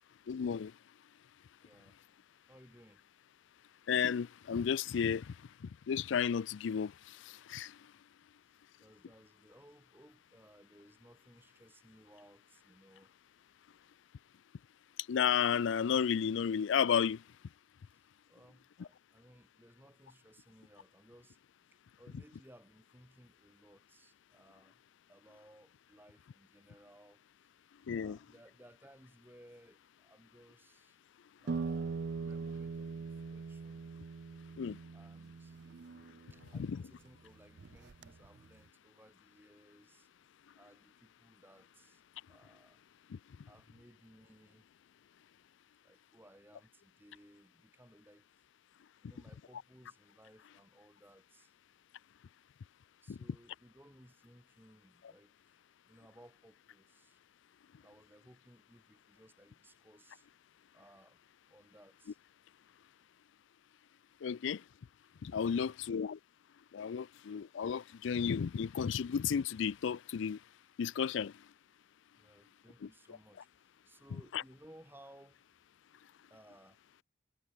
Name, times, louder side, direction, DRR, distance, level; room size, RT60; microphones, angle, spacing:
voice 1, 0.3-0.7 3.9-5.3 5.9-7.8 15.1-17.2 27.9-28.2 34.6-34.8 36.5-36.8 43.1-43.2 53.1-53.2 64.2-64.6 65.2-66.2 66.7-70.4 70.8-71.3 74.3-74.4, left 7 dB, 75° left, 0.4 m, -33 dB
voice 2, 1.6-2.0 2.5-3.0 8.8-13.1 17.9-21.4 21.7-24.8 25.1-27.2 27.6-31.0 31.4-33.9 34.9-35.6 36.3-40.1 40.5-42.0 42.3-42.8 43.5-44.6 45.8-48.3 49.0-51.5 53.0-55.6 55.9-57.2 57.8-60.3 60.7-61.2 61.5-62.2 65.4-65.8 72.2-75.4 76.3-76.8, right 1 dB, 10° right, 3.2 m, -61 dB
sound 1, 31.5-37.1 37.6-38.5, right 4 dB, 60° right, 0.4 m, -41 dB
head